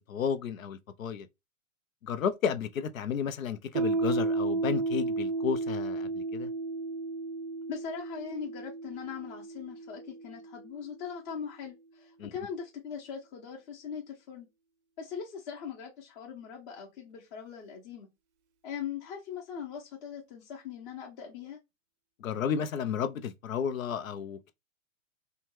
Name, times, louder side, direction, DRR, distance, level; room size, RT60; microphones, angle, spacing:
voice 1, 0.1-1.3 2.0-6.5 12.2-12.3 22.2-24.5, left 7 dB, 90° left, 0.6 m, -32 dB
Piano, 3.8-11.0, right 3 dB, 60° right, 0.5 m, -33 dB
voice 2, 7.7-14.5 15.0-18.1 18.6-21.6, left 7 dB, 35° left, 0.8 m, -40 dB
2.8 x 2.2 x 3.0 m
hypercardioid pair, 130°, 39 cm